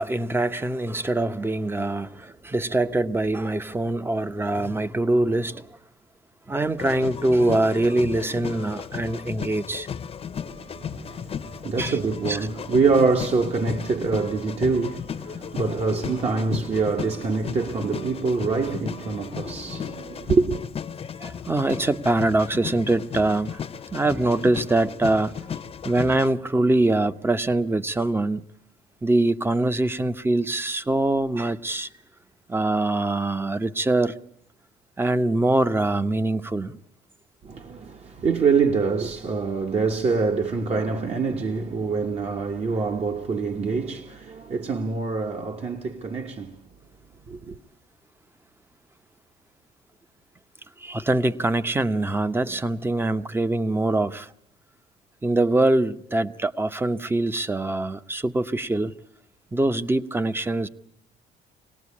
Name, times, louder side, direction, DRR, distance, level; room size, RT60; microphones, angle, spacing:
voice 1, 0.0-5.8 6.5-9.9 11.8-12.0 12.3-12.4 21.2-23.6 23.9-25.4 25.8-28.4 29.0-31.9 32.5-34.2 35.0-36.8 50.8-54.3 55.2-58.9 59.5-60.7, right 2 dB, 15° right, 0.9 m, -23 dB
sound 1, 6.8-26.3, left 7 dB, 35° left, 0.9 m, -35 dB
voice 2, 10.5-20.6 37.4-46.6 47.3-47.6, right 4 dB, 40° right, 1.3 m, -25 dB
26.0 x 18.5 x 8.5 m
cardioid pair, 110°, 17 cm